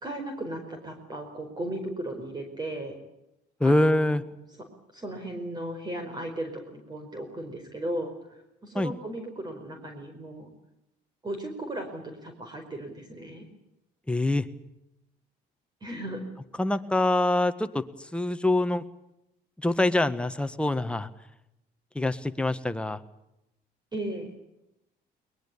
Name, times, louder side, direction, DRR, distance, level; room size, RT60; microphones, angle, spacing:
voice 1, 0.0-2.9 3.7-4.1 4.9-8.1 8.6-10.5 11.2-13.5 15.8-16.2 23.9-24.3, right 1 dB, 25° right, 5 dB, 4.8 m, -36 dB
voice 2, 3.6-4.2 8.7-8.9 14.1-14.5 16.6-18.8 19.6-21.1 21.9-23.0, left 2 dB, 5° left, 9 dB, 1.6 m, -25 dB
22.5 x 21.0 x 8.6 m, 0.85 s
cardioid pair, 110°, 17 cm